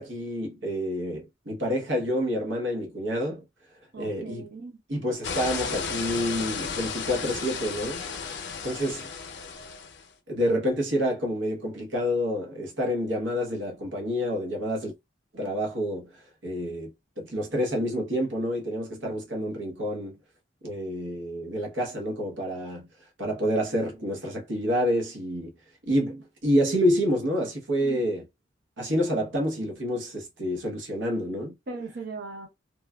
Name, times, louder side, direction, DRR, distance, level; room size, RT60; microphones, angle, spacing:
voice 1, 0.0-3.4 4.0-4.4 4.9-8.0 8.6-9.1 10.3-14.9 15.3-16.1 16.4-20.2 20.6-22.9 23.2-25.5 25.9-28.3 28.8-31.5, equal, 85° right, 1.0 m, -28 dB
voice 2, 3.9-4.8 27.8-28.0 31.7-32.5, right 3 dB, 60° right, 0.8 m, -38 dB
sound 1, 5.2-10.0, left 5 dB, 65° left, 0.6 m, -34 dB
3.1 x 2.2 x 2.2 m
head